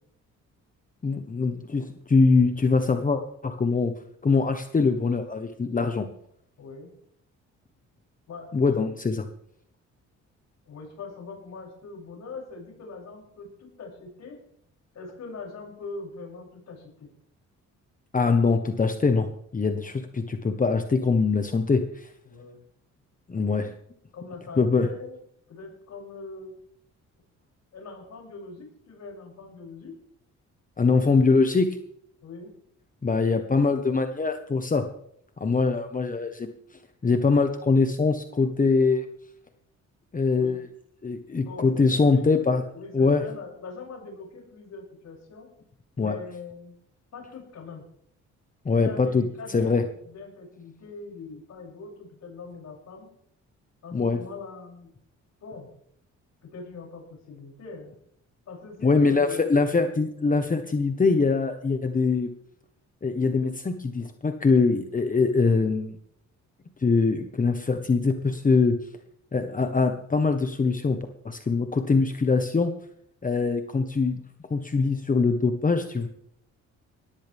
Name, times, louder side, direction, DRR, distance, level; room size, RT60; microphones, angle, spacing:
voice 1, 1.0-3.9 4.2-6.1 8.5-9.2 18.1-19.3 19.5-22.1 23.3-23.7 24.6-24.9 30.8-31.7 33.0-34.9 35.4-36.5 37.0-39.0 40.1-40.6 41.0-42.6 42.9-43.2 46.0-46.2 48.6-49.2 49.5-49.8 53.9-54.2 58.8-62.3 63.0-66.0 66.8-68.8 69.3-71.0 71.2-72.7 73.2-74.2 74.5-76.1, left 4 dB, 25° left, 7 dB, 1.4 m, -23 dB
voice 2, 6.6-6.9 8.3-9.0 10.7-14.4 14.9-17.1 22.2-22.6 24.1-25.2 25.5-26.6 27.7-29.9 31.0-31.1 32.2-32.5 40.3-40.6 41.4-42.3 42.7-45.5 46.0-46.7 47.1-47.9 48.7-53.1 53.8-54.9 55.4-55.7 56.4-57.9 58.5-59.5, left 3 dB, 60° left, -2 dB, 7.8 m, -42 dB
19.5 x 14.5 x 3.6 m, 0.68 s
cardioid pair, 90°, 30 cm